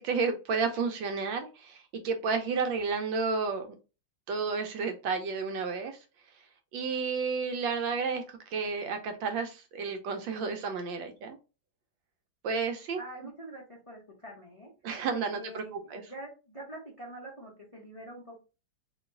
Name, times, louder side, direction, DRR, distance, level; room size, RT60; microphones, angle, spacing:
voice 1, 0.0-3.7 4.3-6.0 6.7-8.2 8.5-11.4 12.4-13.0 14.8-15.6 15.9-16.0, right 5 dB, 75° right, 5 dB, 1.2 m, -31 dB
voice 2, 13.0-14.7 15.1-18.4, right 1 dB, 35° left, -3 dB, 0.5 m, -45 dB
3.0 x 2.9 x 3.7 m, 0.31 s
omnidirectional pair, 2.3 m